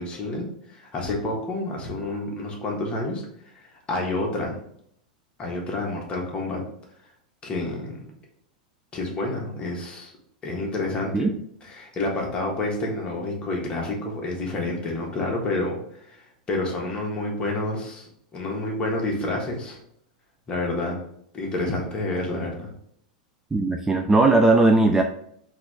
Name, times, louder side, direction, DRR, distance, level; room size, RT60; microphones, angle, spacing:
voice 1, 0.0-3.2 3.5-4.5 5.4-6.6 7.4-8.0 8.9-10.1 10.4-11.3 11.7-19.8 20.5-21.0 21.3-22.7, left 2 dB, 25° left, -1 dB, 1.4 m, -29 dB
voice 2, 23.5-25.0, right 2 dB, 10° right, 4 dB, 0.3 m, -18 dB
3.9 x 3.0 x 3.6 m, 0.69 s
hypercardioid pair, 100°, 4 cm